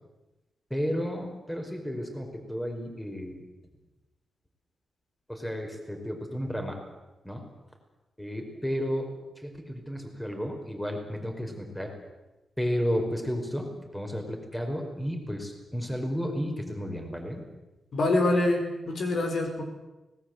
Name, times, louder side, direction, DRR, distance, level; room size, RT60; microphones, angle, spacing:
voice 1, 0.7-3.3 5.3-6.8 7.2-7.4 8.2-9.1 9.4-11.9 12.6-17.4, equal, 10° left, 3 dB, 5.1 m, -32 dB
voice 2, 17.9-19.6, left 2 dB, 65° left, 4 dB, 4.6 m, -25 dB
25.0 x 19.5 x 8.1 m, 1.1 s
cardioid pair, 100°, 0 cm